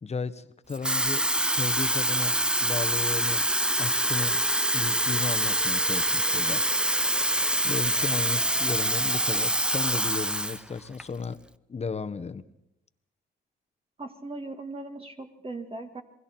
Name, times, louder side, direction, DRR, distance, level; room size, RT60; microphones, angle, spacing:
voice 1, 0.0-2.3 2.6-3.4 3.8-4.4 4.7-6.6 7.6-11.4 11.7-12.4, left 5 dB, 35° left, 10 dB, 1.2 m, -34 dB
Water tap faucet / Fill (with liquid), 0.7-10.6 11.0-11.2, right 1 dB, 5° right, 0.6 m, -25 dB
voice 2, 14.0-16.0, right 2 dB, 30° right, 5 dB, 1.9 m, -38 dB
28.5 x 20.5 x 4.5 m, 0.84 s
supercardioid pair, 70°, 20 cm